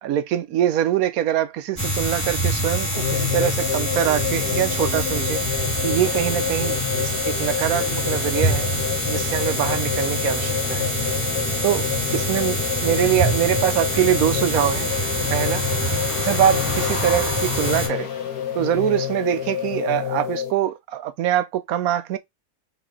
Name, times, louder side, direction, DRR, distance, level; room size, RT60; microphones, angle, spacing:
voice 1, 0.0-8.7 9.1-10.9 11.6-14.9 15.3-15.6 16.2-18.1 18.5-22.2, right 11 dB, 70° right, 1.0 m, -23 dB
sound 1, 1.8-17.9, equal, 10° left, 2.8 m, -25 dB
sound 2, 2.9-20.5, left 10 dB, 90° left, 1.2 m, -28 dB
sound 3, 14.7-19.9, left 4 dB, 65° left, 1.6 m, -37 dB
4.3 x 3.8 x 3.0 m
omnidirectional pair, 1.7 m